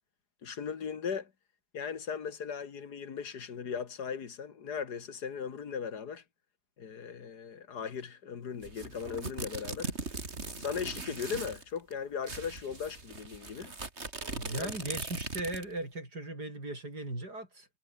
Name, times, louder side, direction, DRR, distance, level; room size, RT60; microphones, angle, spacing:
voice 1, 0.4-1.3 1.7-6.2 6.8-9.9 10.6-13.7 14.5-14.7, left 6 dB, 80° left, 2.3 m, -38 dB
sound 1, 8.6-11.6 11.9-12.0 12.2-15.8, right 3 dB, 40° right, 3.2 m, -40 dB
voice 2, 14.3-17.7, right 2 dB, 85° right, 8.5 m, -38 dB
omnidirectional pair, 1.7 m